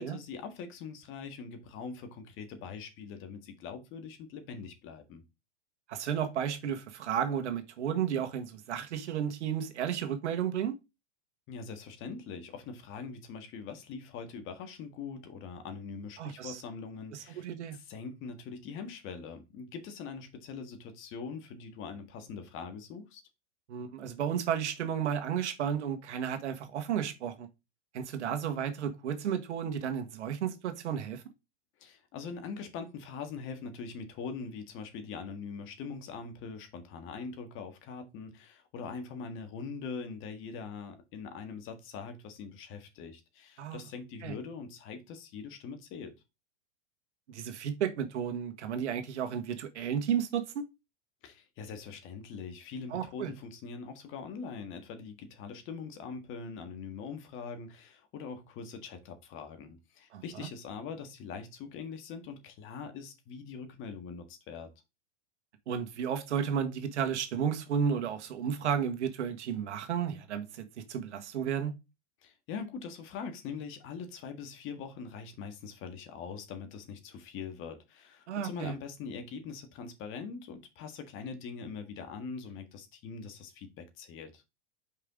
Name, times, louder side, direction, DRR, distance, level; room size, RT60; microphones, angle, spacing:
voice 1, 0.0-5.2 11.5-17.5 17.7-23.2 31.8-46.1 51.2-64.7 72.2-84.4, left 5 dB, 35° left, 1.8 m, -42 dB
voice 2, 5.9-10.7 16.2-16.6 17.1-17.8 23.7-27.5 27.9-31.2 43.6-43.8 44.2-44.3 47.3-50.6 52.9-53.3 60.1-60.5 65.7-71.7 78.3-78.7, right 8 dB, 85° right, 1.6 m, -33 dB
5.5 x 5.1 x 3.7 m
supercardioid pair, 135°, 34 cm